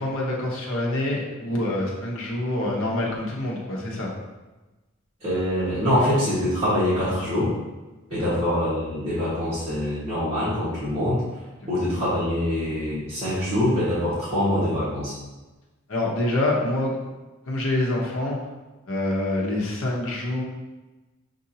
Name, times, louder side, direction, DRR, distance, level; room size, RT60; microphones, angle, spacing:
voice 1, 0.0-4.1 8.2-8.4 15.9-17.0 17.5-18.4 18.9-20.4, left 1 dB, 70° left, -3 dB, 0.9 m, -26 dB
voice 2, 5.2-7.5 8.1-11.2 11.7-15.1, left 1 dB, 30° right, -13 dB, 1.4 m, -24 dB
6.7 x 2.6 x 2.8 m, 1.1 s
head